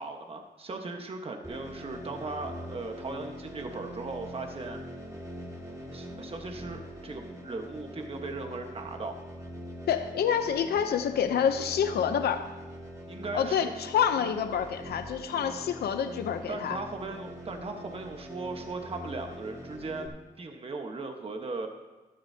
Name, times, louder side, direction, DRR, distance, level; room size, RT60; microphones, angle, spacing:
voice 1, 0.0-4.8 5.9-9.1 13.1-13.7 16.5-21.7, right 3 dB, 35° right, 4 dB, 1.3 m, -38 dB
sound 1, 1.4-20.1, equal, 20° right, 2.1 m, -43 dB
voice 2, 9.9-12.5 13.3-16.8, left 8 dB, 80° left, 8 dB, 0.7 m, -27 dB
15.0 x 12.5 x 2.8 m, 1.2 s
cardioid pair, 95°, 16 cm